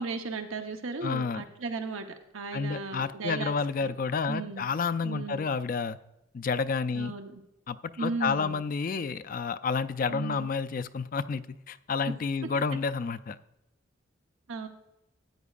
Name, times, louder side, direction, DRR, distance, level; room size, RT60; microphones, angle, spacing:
voice 1, 0.0-2.1 2.3-3.6 3.8-3.9 4.3-4.7 5.0-5.5 6.9-7.4 8.0-8.6 10.1-10.5 14.5-14.7, right 4 dB, 85° right, 6 dB, 0.9 m, -35 dB
voice 2, 1.0-1.4 2.5-6.0 6.3-7.1 7.7-13.4, left 5 dB, 40° left, 13 dB, 0.4 m, -30 dB
13.5 x 9.1 x 2.4 m, 0.90 s
head